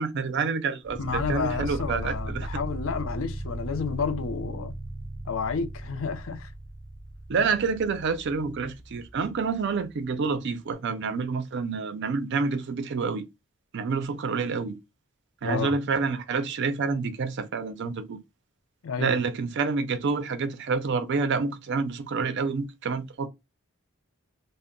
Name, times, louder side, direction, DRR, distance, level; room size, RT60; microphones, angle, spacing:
voice 1, 0.0-2.5 7.3-13.3 13.7-14.8 15.4-18.2 19.0-23.3, right 4 dB, 55° right, 0.4 m, -28 dB
sound 1, 0.8-10.0, right 1 dB, 5° right, 0.6 m, -37 dB
voice 2, 1.0-4.7 5.3-6.5 15.4-15.7 18.8-19.2, left 5 dB, 70° left, 0.5 m, -31 dB
2.2 x 2.0 x 3.6 m
head